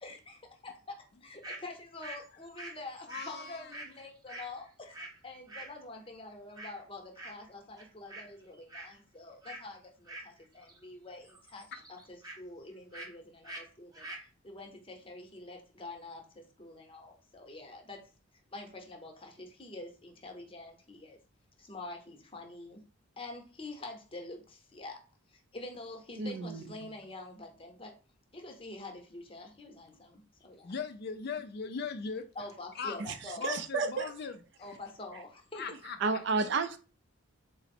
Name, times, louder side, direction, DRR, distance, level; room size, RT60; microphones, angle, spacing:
voice 1, 0.0-11.7 12.1-18.0 18.5-21.2 21.6-22.8 23.2-25.0 25.3-27.9 28.3-30.7 32.4-33.5 34.6-35.6, left 2 dB, 25° left, 0.8 m, -46 dB
sound 1, 1.4-1.6 2.0-5.2 5.5-5.7 6.5-6.8 7.2-7.5 7.8-8.3 8.5-9.0 9.4-9.7 10.1-10.8 11.1-12.4 12.9-13.1 13.4-13.6 13.9-14.3, right 2 dB, 20° right, 0.6 m, -45 dB
voice 2, 3.1-3.7 11.7-11.8 30.6-32.3 32.7-33.0 33.4-34.8 35.5-36.2, left 5 dB, 50° left, 0.3 m, -39 dB
voice 3, 26.2-26.6 33.0-33.2 33.4-34.1 36.0-36.8, right 4 dB, 55° right, 0.4 m, -31 dB
4.0 x 2.0 x 4.2 m
head